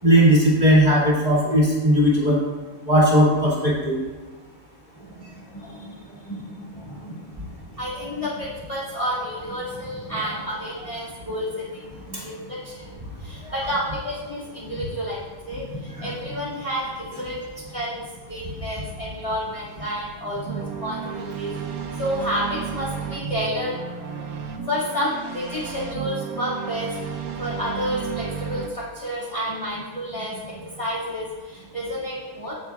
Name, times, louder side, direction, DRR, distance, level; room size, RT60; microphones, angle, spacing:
voice 1, 0.0-2.4 2.9-4.0 13.4-13.6 15.9-16.1, equal, 30° right, -7 dB, 2.6 m, -17 dB
voice 2, 5.0-21.5 22.0-23.8 24.7-27.0 27.4-32.5, equal, 20° left, -8 dB, 2.2 m, -30 dB
sound 1, 20.5-28.7, right 7 dB, 80° right, 1.3 m, -33 dB
16.0 x 6.4 x 2.4 m, 1.3 s
omnidirectional pair, 1.5 m